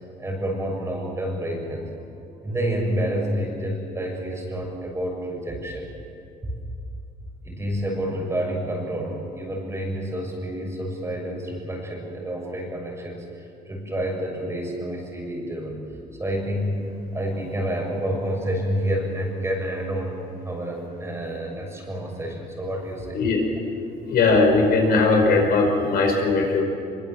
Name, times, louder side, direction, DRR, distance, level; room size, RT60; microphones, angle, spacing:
voice 1, 0.2-1.9 2.4-5.9 7.4-15.8 16.2-23.2, right 1 dB, 15° right, 0 dB, 6.8 m, -29 dB
voice 2, 24.0-26.6, left 3 dB, 65° left, 1 dB, 5.3 m, -19 dB
24.0 x 23.0 x 7.5 m, 2.5 s
cardioid pair, 110°, 17 cm